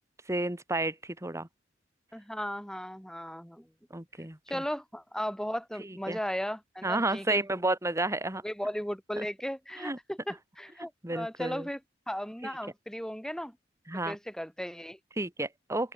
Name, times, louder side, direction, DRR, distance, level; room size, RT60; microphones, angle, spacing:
voice 1, 0.3-0.9 1.2-1.5 3.9-4.4 6.1-6.2 6.8-8.4 9.2-9.3 9.8-10.0 11.0-11.7 13.9-14.2 15.2-15.9, right 2 dB, 15° right, 2.0 m, -31 dB
voice 2, 2.1-3.7 4.5-7.5 8.4-11.8 12.1-13.6 14.1-15.0, equal, 5° left, 4.1 m, -36 dB
open air
head